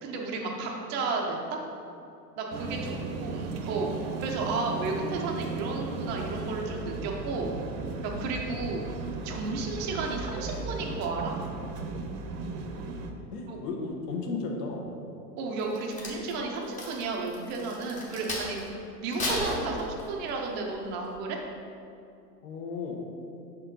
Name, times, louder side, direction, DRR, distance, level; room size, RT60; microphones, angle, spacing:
voice 1, 0.0-1.6 2.4-7.5 8.0-8.8 9.2-11.3 13.5-13.6 15.4-18.6 19.0-21.4, right 3 dB, 20° right, 0 dB, 0.5 m, -33 dB
sound 1, 2.5-13.1, right 3 dB, 55° right, 0.7 m, -36 dB
voice 2, 13.3-14.8 22.4-23.0, left 4 dB, 70° left, 1 dB, 1.2 m, -34 dB
Crack, 15.6-18.7 19.1-20.3 20.8-21.1, left 1 dB, 15° left, 0.8 m, -35 dB
5.9 x 4.3 x 3.9 m, 2.6 s
supercardioid pair, 140°, 49 cm